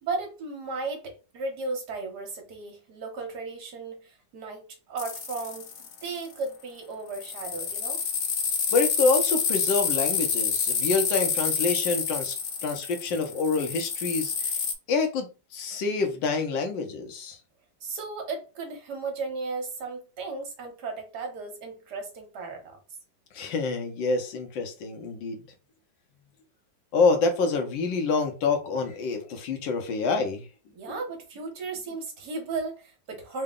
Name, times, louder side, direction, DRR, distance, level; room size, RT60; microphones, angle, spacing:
voice 1, 0.0-8.0 17.8-22.8 30.7-33.4, right 3 dB, 65° right, 1.5 m, -35 dB
sound 1, 5.0-6.2 7.1-14.7, left 6 dB, 65° left, 0.9 m, -28 dB
voice 2, 8.7-12.3 12.6-14.6 14.9-17.4 23.3-25.4 26.9-30.5 30.9-31.0, left 4 dB, 80° left, 1.5 m, -27 dB
3.9 x 2.2 x 3.6 m
omnidirectional pair, 2.0 m